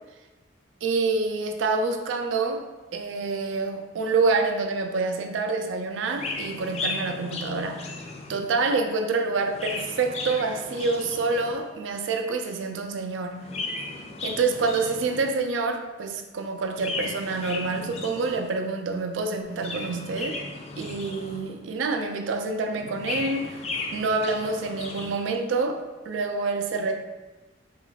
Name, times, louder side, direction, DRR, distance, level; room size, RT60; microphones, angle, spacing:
voice 1, 0.8-2.6 2.9-7.9 8.3-13.4 14.2-20.4 20.8-23.6 23.9-26.9, right 3 dB, 85° right, 5 dB, 0.4 m, -27 dB
Chirp tweet, 6.1-8.6 9.3-11.7 13.3-15.5 16.7-18.6 19.4-21.7 22.7-25.3, left 3 dB, 35° left, 0.3 m, -36 dB
3.1 x 2.3 x 3.9 m, 1.1 s
head